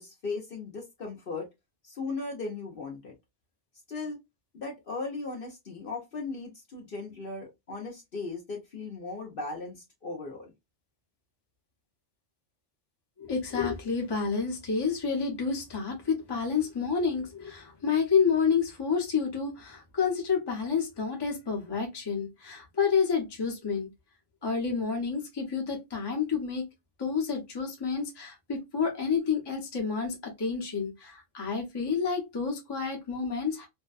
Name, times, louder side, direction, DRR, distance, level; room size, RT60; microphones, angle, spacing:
voice 1, 0.0-1.5 1.8-3.1 3.9-4.2 4.5-10.5, left 3 dB, 55° left, 0.8 m, -37 dB
voice 2, 13.2-23.9 24.4-26.7 27.0-33.7, left 6 dB, 25° left, 0.7 m, -29 dB
2.6 x 2.1 x 2.3 m
omnidirectional pair, 1.3 m